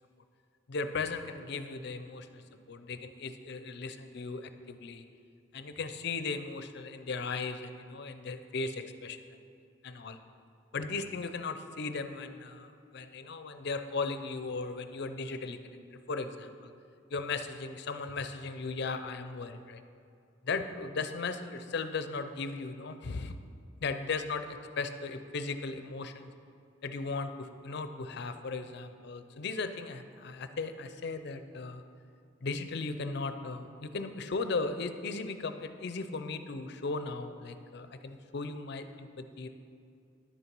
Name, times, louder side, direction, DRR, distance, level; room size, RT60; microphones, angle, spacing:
voice 1, 0.7-2.4 2.7-5.0 5.5-9.2 9.8-10.2 10.7-15.6 16.1-16.7 17.1-19.8 20.4-23.3 23.8-26.3 26.8-31.8 32.4-39.5, left 4 dB, 60° left, 9 dB, 0.5 m, -37 dB
10.5 x 6.8 x 4.6 m, 2.5 s
head